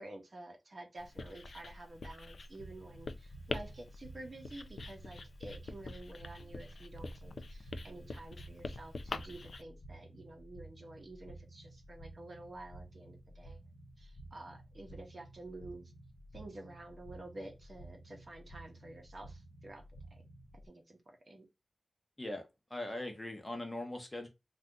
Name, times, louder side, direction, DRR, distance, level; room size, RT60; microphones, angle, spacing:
voice 1, 0.0-13.6 14.0-15.9 16.3-19.8 20.1-20.2 20.6-21.5, right 2 dB, 45° right, 0.8 m, -50 dB
Writing, 1.0-9.6, left 3 dB, 65° left, 0.3 m, -45 dB
sound 1, 2.6-20.7, right 1 dB, 85° left, 0.8 m, -53 dB
voice 2, 22.2-24.3, left 1 dB, 15° left, 0.7 m, -41 dB
2.6 x 2.3 x 3.5 m
wide cardioid pair, 115°, 0 cm